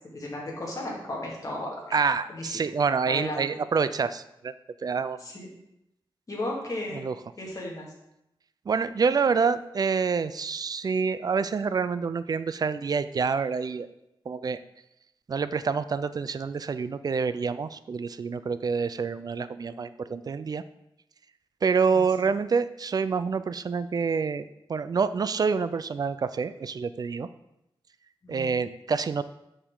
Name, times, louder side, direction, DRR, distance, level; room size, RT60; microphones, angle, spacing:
voice 1, 0.1-2.0 2.3-2.5 3.1-3.4 5.2-5.5 6.3-7.0 7.4-7.9 21.9-22.3 28.2-28.5, left 1 dB, 40° left, -3 dB, 2.1 m, -35 dB
voice 2, 1.9-4.5 4.8-5.2 6.9-7.1 8.7-13.9 14.3-14.6 15.3-20.6 21.6-24.4 24.7-27.3 28.3-29.2, right 5 dB, 45° right, 13 dB, 0.3 m, -27 dB
6.9 x 6.4 x 3.8 m, 0.85 s
wide cardioid pair, 145°, 9 cm